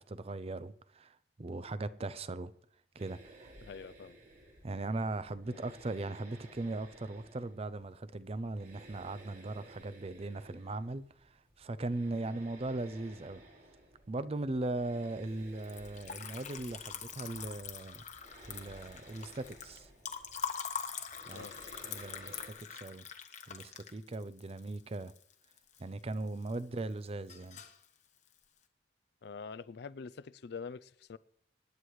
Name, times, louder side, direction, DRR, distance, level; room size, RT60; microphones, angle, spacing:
voice 1, 0.0-2.5 3.0-3.5 4.6-13.4 14.1-18.0 18.5-19.9 21.3-21.5 21.8-23.0 23.5-25.1 25.8-27.6, right 2 dB, 35° right, 0.5 m, -39 dB
sound 1, 3.0-22.5, right 1 dB, 55° right, 4.8 m, -56 dB
voice 2, 3.6-4.2 5.5-5.7 12.2-12.4 21.3-21.6 29.2-31.2, left 5 dB, 65° left, 0.4 m, -45 dB
Liquid, 15.6-25.8 26.1-26.8 27.0-27.8, left 7 dB, 45° left, 1.0 m, -43 dB
25.0 x 10.0 x 3.2 m
head